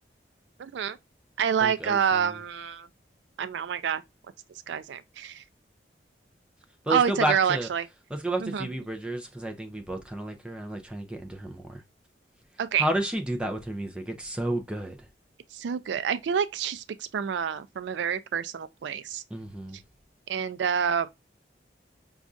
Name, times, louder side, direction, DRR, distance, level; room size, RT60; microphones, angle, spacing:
voice 1, 0.6-1.0 1.4-2.9 3.4-4.0 4.7-5.4 6.9-7.9 8.4-8.7 12.6-12.8 15.5-19.2 20.3-21.1, right 7 dB, 85° right, 0.4 m, -27 dB
voice 2, 1.6-2.4 6.8-7.7 8.1-11.8 12.7-15.1 19.3-19.8, right 1 dB, 5° right, 0.5 m, -31 dB
5.1 x 2.4 x 2.4 m
head